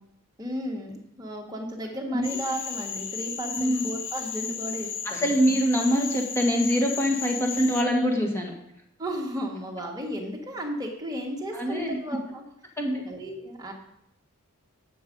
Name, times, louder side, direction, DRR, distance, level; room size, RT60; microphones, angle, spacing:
voice 1, 0.4-5.3 9.0-12.4 13.0-13.7, equal, 15° right, -1 dB, 1.6 m, -34 dB
Cricket / Frog, 2.2-7.8, left 7 dB, 55° left, 0.9 m, -34 dB
voice 2, 3.5-3.8 5.0-8.5 11.5-12.0 12.8-13.0, equal, 10° left, 1 dB, 1.6 m, -24 dB
9.3 x 7.3 x 5.3 m, 0.81 s
head